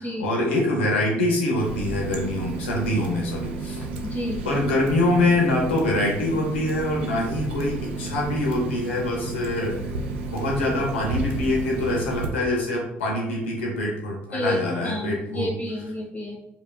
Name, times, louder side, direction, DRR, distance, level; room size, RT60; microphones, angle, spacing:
voice 1, 0.0-3.9 4.4-9.8 10.3-15.5, left 1 dB, 85° left, -1 dB, 0.9 m, -24 dB
Water tap faucet, 1.6-12.3, right 3 dB, 80° right, 0.5 m, -32 dB
voice 2, 4.0-4.5 14.3-14.6 14.8-16.4, left 1 dB, 25° left, -2 dB, 1.4 m, -30 dB
4.9 x 2.9 x 2.3 m, 0.84 s
hypercardioid pair, 55°, 6 cm